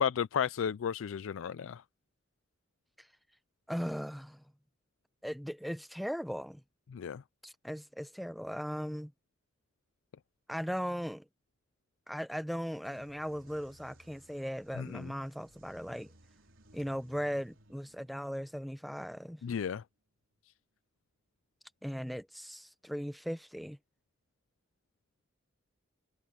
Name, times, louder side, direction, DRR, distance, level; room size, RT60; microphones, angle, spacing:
voice 1, 0.0-1.8 6.9-7.2 14.8-15.1 19.4-19.8, left 7 dB, 85° left, 0.4 m, -33 dB
voice 2, 3.7-4.4 5.2-6.6 7.4-9.1 10.5-11.3 12.1-16.1 16.7-19.4 21.8-23.8, equal, ahead, 0.7 m, -38 dB
sound 1, 12.8-20.4, right 1 dB, 75° right, 4.0 m, -62 dB
head